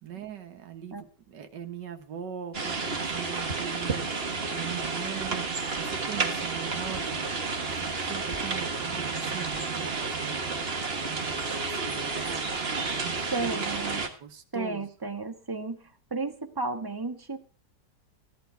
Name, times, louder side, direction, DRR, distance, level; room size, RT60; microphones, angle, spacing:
voice 1, 0.0-4.1 4.5-5.5 5.8-7.3 7.6-10.4 11.0-12.5 12.8-13.8 14.2-14.8, right 8 dB, 75° right, 6 dB, 2.0 m, -41 dB
sound 1, 2.5-14.1, right 4 dB, 35° right, 1.6 m, -31 dB
voice 2, 13.3-14.0 14.5-15.8 16.1-17.4, right 3 dB, 15° right, 5 dB, 1.3 m, -33 dB
15.0 x 11.5 x 4.6 m, 0.37 s
omnidirectional pair, 1.9 m